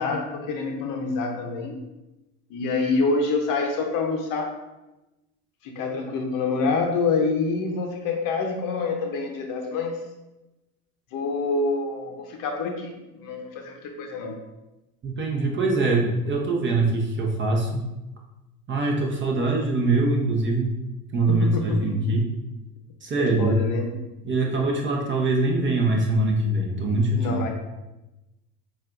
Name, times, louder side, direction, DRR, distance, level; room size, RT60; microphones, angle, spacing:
voice 1, 0.0-1.8 2.5-4.6 5.6-10.0 11.1-14.4 21.3-21.9 23.2-23.9 26.7-26.9 27.1-27.5, left 3 dB, 45° left, 3 dB, 0.8 m, -27 dB
voice 2, 15.0-17.8 18.7-20.7 21.1-22.3 23.0-23.5 24.2-27.5, right 2 dB, 25° right, 0 dB, 0.8 m, -23 dB
6.4 x 2.5 x 2.5 m, 1.0 s
hypercardioid pair, 80°, 46 cm